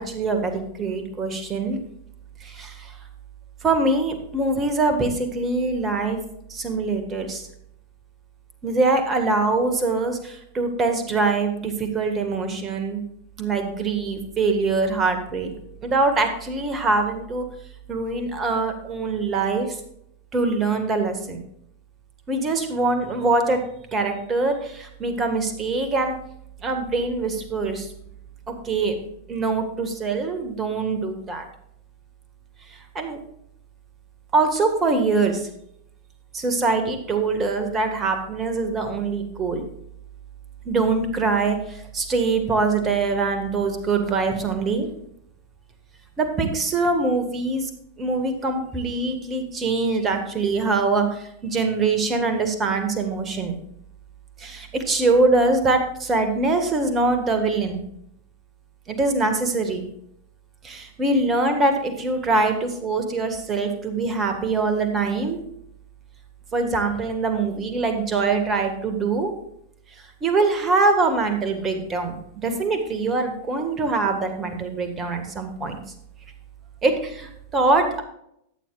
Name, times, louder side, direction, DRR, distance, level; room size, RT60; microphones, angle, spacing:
voice 1, 0.0-1.8 2.4-2.9 3.6-6.2 6.5-7.5 8.6-13.0 13.4-15.5 15.8-17.5 17.9-19.8 20.3-21.4 22.3-23.6 23.9-26.2 26.6-27.9 28.5-29.0 29.3-31.4 33.0-33.2 34.3-35.5 36.3-39.6 40.7-44.9 46.2-47.7 48.0-53.5 54.4-57.8 58.9-59.8 60.6-65.4 66.5-69.3 70.2-72.2 72.4-75.8 76.8-78.0, right 3 dB, 25° right, 6 dB, 1.8 m, -23 dB
14.0 x 9.3 x 2.5 m, 0.72 s
figure-of-eight pair, 90°, 0 cm